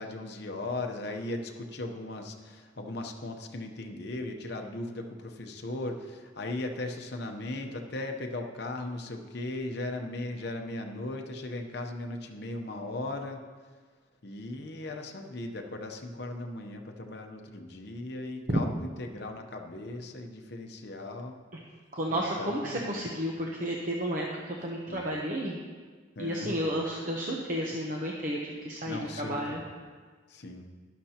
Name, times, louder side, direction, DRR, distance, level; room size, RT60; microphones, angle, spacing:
voice 1, 0.0-13.4 14.2-21.4 22.1-23.0 24.9-25.0 26.2-26.5 28.9-29.6 30.3-30.7, left 2 dB, 55° left, 3 dB, 0.9 m, -37 dB
voice 2, 21.9-25.6 26.2-29.6, equal, 40° right, -1 dB, 0.8 m, -32 dB
12.0 x 11.0 x 2.9 m, 1.5 s
head